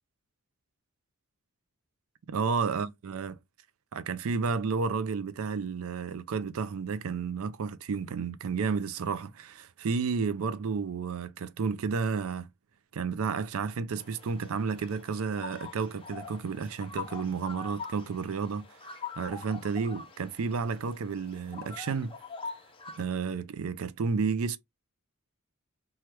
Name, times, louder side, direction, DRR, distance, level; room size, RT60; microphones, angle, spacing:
voice 1, 2.3-3.4 3.9-12.5 12.9-18.7 19.2-22.1 23.0-24.6, right 5 dB, 70° right, 0.4 m, -31 dB
sound 1, 14.0-23.1, left 5 dB, 25° left, 0.5 m, -44 dB
3.1 x 2.3 x 2.8 m
head